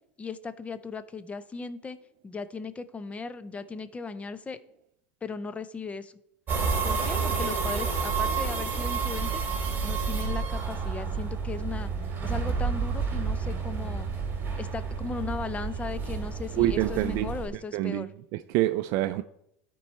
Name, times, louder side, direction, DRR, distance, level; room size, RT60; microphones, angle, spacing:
voice 1, 0.2-4.6 5.2-6.1 6.8-9.4 9.8-11.9 12.2-14.1 14.6-18.1, left 4 dB, 20° left, 0.6 m, -37 dB
sound 1, 6.5-17.5, right 5 dB, 30° right, 2.6 m, -30 dB
voice 2, 16.5-17.3 17.7-19.2, right 15 dB, 60° right, 0.4 m, -26 dB
13.0 x 4.6 x 4.3 m
supercardioid pair, 105°, 7 cm